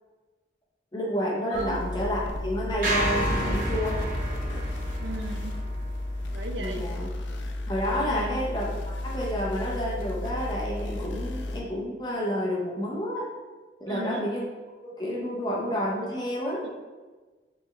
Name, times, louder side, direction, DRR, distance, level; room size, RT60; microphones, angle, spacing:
voice 1, 0.9-4.1 6.6-7.1 7.7-13.3 13.8-14.5 14.8-16.7, equal, 25° left, -4 dB, 0.6 m, -30 dB
sound 1, 1.5-11.6, left 1 dB, 90° left, 0.5 m, -33 dB
sound 2, 2.8-7.1, right 1 dB, 50° right, 1.0 m, -31 dB
voice 2, 3.3-3.6 5.0-5.5 6.3-6.8 8.0-8.4 13.9-14.3 16.6-16.7, right 2 dB, 75° right, 4 dB, 0.5 m, -36 dB
4.2 x 3.2 x 3.1 m, 1.3 s
head